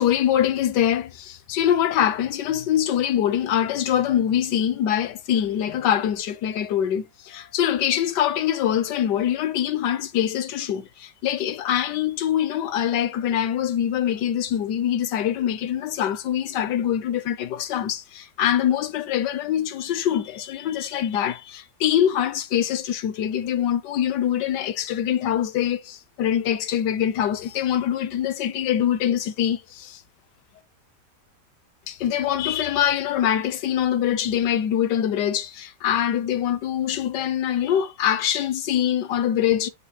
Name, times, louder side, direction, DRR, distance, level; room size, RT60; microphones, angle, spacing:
voice 1, 0.0-30.0 31.9-39.7, left 10 dB, 80° left, 1.4 m, -24 dB
8.2 x 5.5 x 2.2 m
omnidirectional pair, 1.8 m